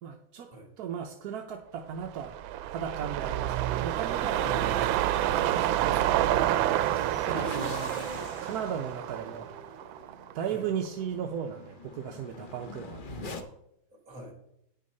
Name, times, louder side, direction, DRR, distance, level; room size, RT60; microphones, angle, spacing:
voice 1, 0.0-0.5 0.8-2.4 2.7-4.6 7.3-8.1 8.4-9.5 10.3-13.5, right 8 dB, 65° right, 4 dB, 1.1 m, -36 dB
sound 1, 2.0-10.5 10.8-10.9, right 13 dB, 85° right, 1.3 m, -28 dB
voice 2, 4.4-5.0 10.5-10.6 13.9-14.3, right 1 dB, 40° right, 2 dB, 2.9 m, -44 dB
sound 2, 6.8-13.4, left 2 dB, 50° left, 0.6 m, -43 dB
9.5 x 6.5 x 5.3 m, 0.77 s
omnidirectional pair, 2.1 m